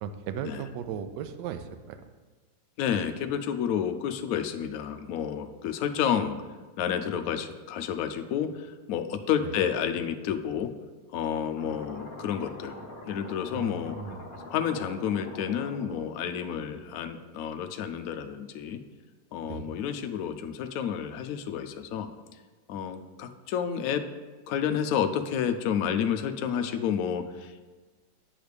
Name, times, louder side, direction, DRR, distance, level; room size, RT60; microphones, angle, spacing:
voice 1, 0.0-2.0 9.4-9.5 13.5-14.3 19.4-19.7, right 7 dB, 75° right, 9 dB, 1.1 m, -37 dB
voice 2, 2.8-6.4 6.8-10.7 11.1-12.7 13.1-13.9 14.5-18.8 19.3-22.1 22.7-24.0 24.5-27.6, left 8 dB, 90° left, 8 dB, 0.7 m, -30 dB
sound 1, 11.6-17.4, left 1 dB, 45° left, 0.7 m, -44 dB
8.7 x 3.4 x 6.5 m, 1.3 s
omnidirectional pair, 2.1 m